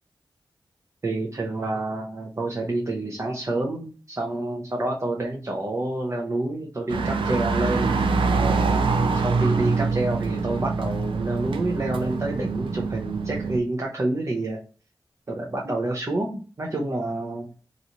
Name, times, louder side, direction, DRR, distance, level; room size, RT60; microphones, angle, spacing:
voice 1, 1.0-8.0 8.3-8.8 9.1-14.6 15.3-17.5, right 2 dB, 35° right, -1 dB, 0.7 m, -28 dB
sound 1, 6.9-13.6, right 4 dB, 85° right, 0.4 m, -24 dB
3.1 x 2.6 x 2.7 m, 0.38 s
wide cardioid pair, 90°, 9 cm